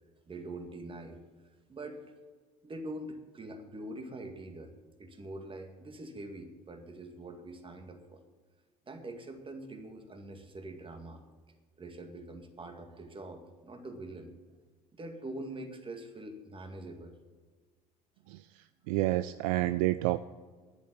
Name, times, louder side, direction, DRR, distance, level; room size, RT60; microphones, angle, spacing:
voice 1, 0.3-1.2 1.7-2.0 2.6-4.7 5.0-8.2 8.9-11.2 11.8-14.3 14.9-17.2 18.3-18.4, right 1 dB, 25° right, 5 dB, 2.1 m, -44 dB
voice 2, 18.9-20.2, right 17 dB, 65° right, 13 dB, 0.4 m, -28 dB
10.5 x 8.4 x 8.3 m, 1.5 s
figure-of-eight pair, 60°, 20 cm